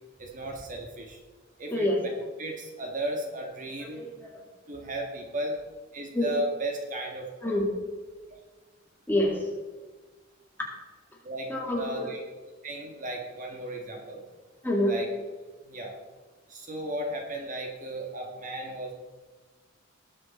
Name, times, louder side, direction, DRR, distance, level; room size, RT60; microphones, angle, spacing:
voice 1, 0.2-1.2 1.6-1.9 2.4-4.1 4.7-5.5 5.9-7.3 11.2-12.2 12.6-14.2 14.8-15.1 15.7-15.9 16.5-18.9, right 1 dB, 40° right, 2 dB, 1.7 m, -35 dB
voice 2, 3.8-4.4 6.1-6.3 7.4-7.6 9.1-9.4 11.5-12.1 14.6-15.0, left 1 dB, 10° left, -1 dB, 2.2 m, -27 dB
19.0 x 6.8 x 4.3 m, 1.3 s
head